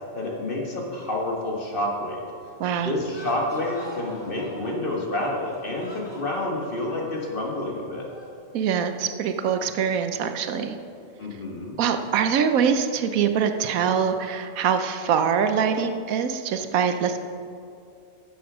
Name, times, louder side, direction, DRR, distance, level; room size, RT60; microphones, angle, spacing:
voice 1, 0.1-2.2 2.8-8.1 11.2-11.7, left 1 dB, 40° left, -1 dB, 1.6 m, -29 dB
voice 2, 2.6-2.9 8.5-10.7 11.8-17.2, right 7 dB, 80° right, 8 dB, 1.1 m, -24 dB
sound 1, 3.0-8.5, equal, 20° left, 1.2 m, -45 dB
9.6 x 7.3 x 6.0 m, 2.5 s
omnidirectional pair, 1.5 m